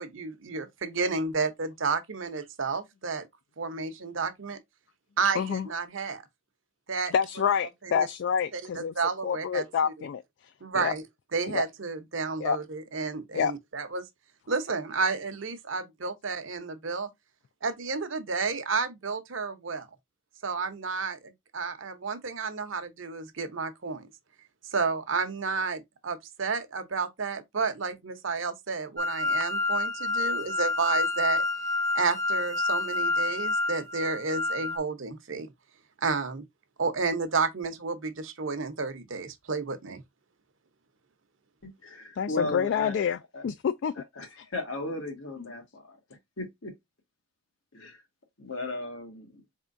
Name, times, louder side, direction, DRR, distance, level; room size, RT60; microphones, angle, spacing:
voice 1, 0.0-3.3 3.6-4.6 5.2-6.2 6.9-7.1 7.8-8.1 8.5-9.6 10.6-11.0 11.3-14.0 14.5-17.1 17.6-19.9 20.4-24.1 24.7-31.4 31.9-35.5 36.0-36.4 36.8-40.0, right 4 dB, 65° right, 0.8 m, -31 dB
voice 2, 5.4-5.7 7.1-8.9 9.2-10.9 11.5-11.6 12.4-12.6 13.3-13.5 42.2-43.9 44.4-44.5 45.4-45.5, left 7 dB, 60° left, 0.3 m, -28 dB
sound 1, 29.0-34.8, left 2 dB, 15° left, 0.7 m, -28 dB
voice 3, 41.6-43.0 43.3-43.4 44.2-46.0 46.4-46.7 47.7-48.0 48.4-49.4, left 2 dB, 80° left, 1.5 m, -36 dB
4.4 x 3.6 x 2.5 m
head